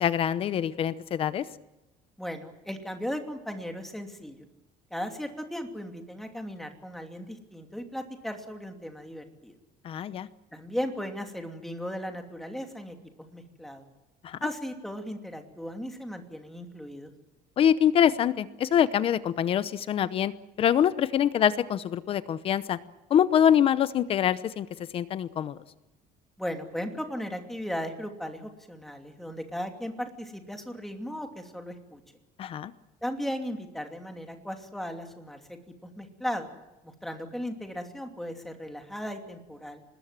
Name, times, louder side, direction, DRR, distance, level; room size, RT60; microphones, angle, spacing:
voice 1, 0.0-1.5 9.8-10.3 14.2-14.4 17.6-20.3 20.6-22.8 23.1-24.7 24.9-25.6 32.4-32.7, left 9 dB, 40° left, 15 dB, 0.8 m, -24 dB
voice 2, 2.2-4.5 4.9-9.6 10.5-13.9 14.4-17.1 26.4-32.0 33.0-36.5 36.8-39.8, equal, ahead, 4 dB, 2.7 m, -36 dB
25.5 x 21.0 x 7.6 m, 1.0 s
cardioid pair, 165°, 15 cm